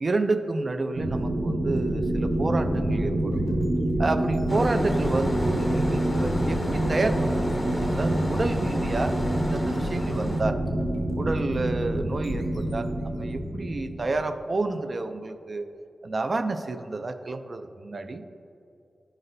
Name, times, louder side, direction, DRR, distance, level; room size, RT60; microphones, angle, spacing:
voice 1, 0.0-3.4 4.0-7.3 7.7-10.6 11.2-15.7 16.0-18.2, right 3 dB, 45° right, 8 dB, 0.3 m, -30 dB
sound 1, 0.9-14.3, right 1 dB, 80° right, 0.7 m, -27 dB
sound 2, 1.7-14.4, left 1 dB, 90° left, 0.9 m, -41 dB
sound 3, 4.5-10.4, left 1 dB, 20° left, 0.6 m, -34 dB
11.0 x 4.0 x 2.6 m, 2.7 s
wide cardioid pair, 125°, 0 cm